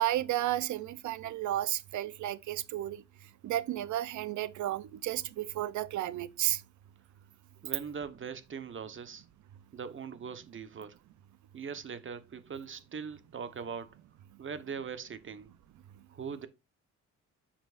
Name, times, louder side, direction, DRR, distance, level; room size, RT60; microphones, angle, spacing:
voice 1, 0.0-3.0 3.4-6.6, right 13 dB, 75° right, 0.7 m, -32 dB
voice 2, 7.6-9.2 9.7-11.0 11.5-14.0 14.4-15.5 16.1-16.5, right 6 dB, 40° right, 1.2 m, -41 dB
9.6 x 5.9 x 2.6 m
cardioid pair, 90°, 30 cm